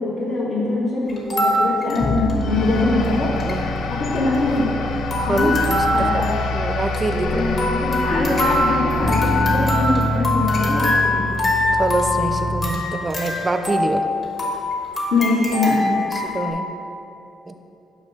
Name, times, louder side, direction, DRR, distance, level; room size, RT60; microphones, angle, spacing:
voice 1, 0.0-3.3 3.9-4.7 5.3-5.5 5.9-6.3 6.6-6.7 7.2-11.3 15.1-15.9, left 2 dB, 85° left, -11 dB, 1.5 m, -23 dB
sound 1, 1.1-2.8 3.0-3.1 3.3-3.6 4.0-4.8 5.1-16.5, left 2 dB, 45° left, 1.2 m, -24 dB
sound 2, 2.0-12.7, equal, 25° left, 0.6 m, -26 dB
sound 3, 2.3-12.9, left 4 dB, 70° left, 0.4 m, -32 dB
voice 2, 3.3-3.7 5.2-7.4 11.7-14.1 16.1-16.7 17.5-17.6, right 2 dB, 25° right, 7 dB, 0.4 m, -26 dB
6.4 x 3.0 x 5.3 m, 2.8 s
cardioid pair, 90°, 0 cm